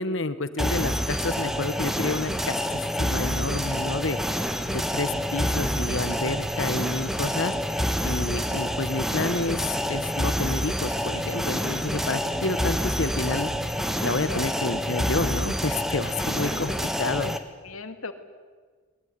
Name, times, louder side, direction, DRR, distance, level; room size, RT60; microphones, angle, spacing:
voice 1, 0.0-4.2 4.7-7.5 8.0-13.5 14.0-16.7 17.0-17.3, left 3 dB, 65° left, 13 dB, 1.3 m, -29 dB
sound 1, 0.6-17.4, equal, ahead, 1.3 m, -28 dB
sound 2, 3.1-14.5, right 1 dB, 30° right, 0.9 m, -43 dB
voice 2, 16.5-17.3 17.6-18.1, left 4 dB, 90° left, 8 dB, 2.2 m, -38 dB
23.0 x 21.0 x 9.7 m, 1.5 s
head